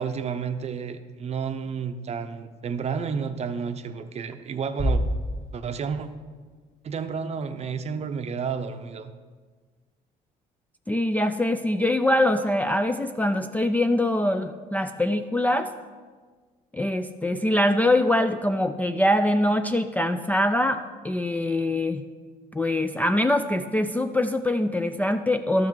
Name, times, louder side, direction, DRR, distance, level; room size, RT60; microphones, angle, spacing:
voice 1, 0.0-5.0 5.5-6.1 6.8-9.1, right 6 dB, 40° right, 9 dB, 0.6 m, -31 dB
sound 1, 4.8-6.2, equal, 45° left, 2.1 m, -27 dB
voice 2, 10.9-15.7 16.7-22.0 22.5-25.7, left 1 dB, 10° left, 8 dB, 0.3 m, -23 dB
12.0 x 5.8 x 4.6 m, 1.5 s
cardioid pair, 110°, 17 cm